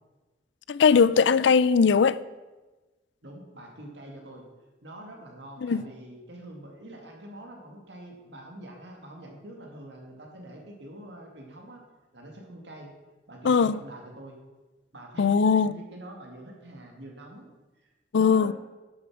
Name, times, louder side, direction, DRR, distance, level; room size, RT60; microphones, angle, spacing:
voice 1, 0.7-2.2 5.6-5.8 13.4-13.8 15.2-15.7 18.1-18.5, left 5 dB, 75° left, 0.4 m, -20 dB
voice 2, 3.2-4.4 4.8-11.8 12.1-12.9 13.3-14.4 14.9-17.5 17.8-18.5, right 1 dB, 70° right, 2.1 m, -45 dB
10.5 x 6.9 x 6.2 m
head